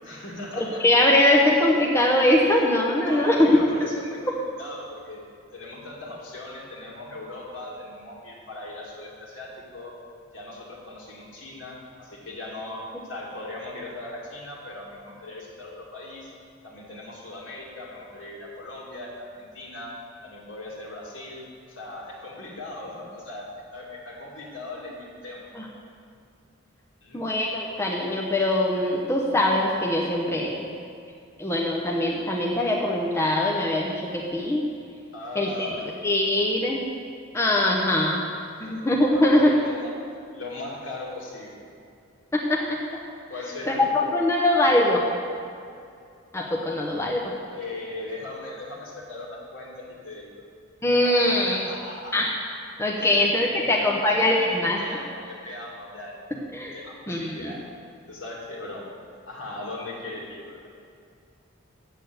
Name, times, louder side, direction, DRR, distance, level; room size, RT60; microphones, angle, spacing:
voice 1, 0.0-0.8 3.0-5.2 5.5-9.9 10.3-12.8 13.1-16.3 16.6-25.5 27.0-27.2 35.1-36.2 38.6-39.9 40.3-41.7 43.3-43.8 47.5-50.4 51.2-52.2 53.0-56.3 56.7-57.6 58.1-59.0 59.3-60.6, left 2 dB, 70° left, -4 dB, 2.4 m, -39 dB
voice 2, 0.6-3.5 25.5-25.7 27.1-30.7 31.4-34.7 35.3-35.5 36.0-36.9 37.3-38.3 38.6-39.5 42.3-43.0 43.7-43.8 44.0-45.0 46.3-47.3 50.8-51.6 52.1-52.3 52.8-55.0 56.5-56.7 57.1-57.5, left 1 dB, 15° left, -2 dB, 0.8 m, -22 dB
8.1 x 6.8 x 7.9 m, 2.4 s
head